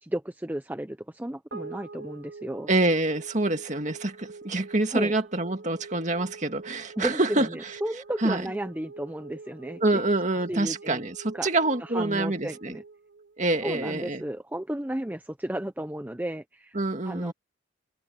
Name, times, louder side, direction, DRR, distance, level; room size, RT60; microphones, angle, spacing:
voice 1, 0.0-2.7 4.9-5.1 7.0-10.0 10.5-11.0 11.3-11.5 11.8-12.8 13.6-16.8 17.0-17.3, right 1 dB, 10° right, 0.6 m, -33 dB
sound 1, 1.5-14.0, right 4 dB, 75° right, 4.3 m, -46 dB
voice 2, 2.7-7.5 8.2-8.4 9.8-12.8 13.4-14.2 16.7-17.3, right 2 dB, 40° right, 2.1 m, -26 dB
head